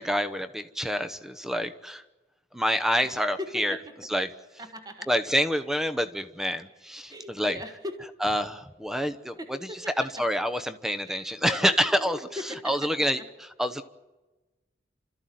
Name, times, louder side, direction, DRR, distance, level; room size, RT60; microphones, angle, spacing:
voice 1, 0.0-2.0 2.5-3.8 4.1-4.3 5.1-7.6 8.2-12.2 12.6-13.2 13.6-13.8, equal, ahead, 11 dB, 1.0 m, -27 dB
voice 2, 3.0-3.9 4.6-5.1 7.1-8.0 9.4-9.9 11.0-13.3, left 1 dB, 20° right, 6 dB, 1.6 m, -40 dB
29.0 x 14.0 x 9.3 m, 1.2 s
head